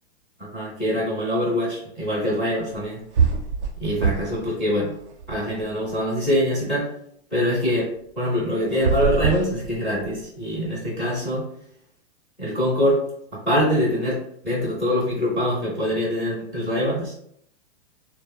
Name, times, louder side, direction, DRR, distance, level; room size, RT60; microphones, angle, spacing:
voice 1, 0.4-3.0 3.8-5.0 5.3-6.9 7.3-7.9 8.2-11.5 12.4-17.1, equal, 5° left, -11 dB, 0.4 m, -24 dB
sound 1, 2.7-2.8 3.1-4.5 4.8-5.9 8.7-10.2, right 5 dB, 80° right, 0.6 m, -24 dB
2.9 x 2.1 x 2.2 m, 0.68 s
hypercardioid pair, 160°, 34 cm